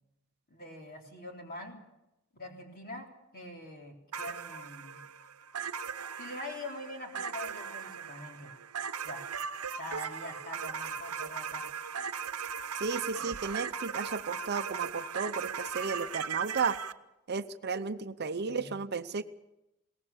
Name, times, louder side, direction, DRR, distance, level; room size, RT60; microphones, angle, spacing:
voice 1, 0.5-1.8 2.3-3.1 3.3-5.0 6.2-8.5 9.0-9.2 9.8-11.7 18.5-18.8, left 1 dB, 45° left, 2 dB, 3.6 m, -44 dB
sound 1, 4.1-16.9, right 6 dB, 90° right, 0.9 m, -38 dB
voice 2, 12.8-16.8 17.3-19.2, right 5 dB, 50° right, 11 dB, 0.7 m, -33 dB
22.0 x 18.5 x 7.3 m, 0.92 s
head